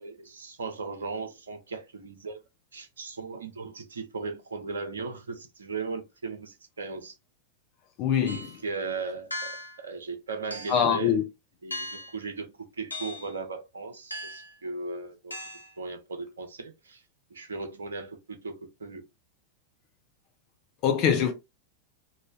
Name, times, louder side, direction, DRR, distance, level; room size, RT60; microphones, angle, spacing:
voice 1, 0.0-2.4 2.7-7.2 8.2-8.4 8.6-11.2 11.6-11.9 12.1-15.3 15.8-17.0 17.3-19.0, right 4 dB, 70° right, 0.5 m, -37 dB
voice 2, 8.0-8.5 10.7-11.2 20.8-21.3, left 8 dB, 40° left, 0.6 m, -23 dB
sound 1, 8.3-8.6 9.3-9.8 10.5-10.9 11.7-12.2 12.9-13.3 14.1-14.5 15.3-15.7, left 1 dB, 85° left, 0.6 m, -38 dB
3.1 x 2.5 x 2.3 m
figure-of-eight pair, 90°, 0 cm